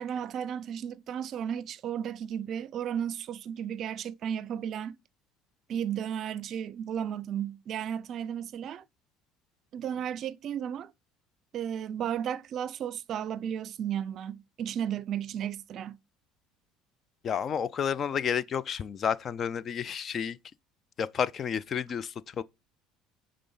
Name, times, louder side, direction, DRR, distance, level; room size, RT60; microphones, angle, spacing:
voice 1, 0.0-5.0 5.7-8.8 9.7-10.9 11.5-16.0, right 9 dB, 50° right, 0.5 m, -34 dB
voice 2, 17.2-20.4 21.0-22.4, left 7 dB, 40° left, 0.4 m, -31 dB
9.9 x 3.8 x 5.4 m
supercardioid pair, 100°, 0 cm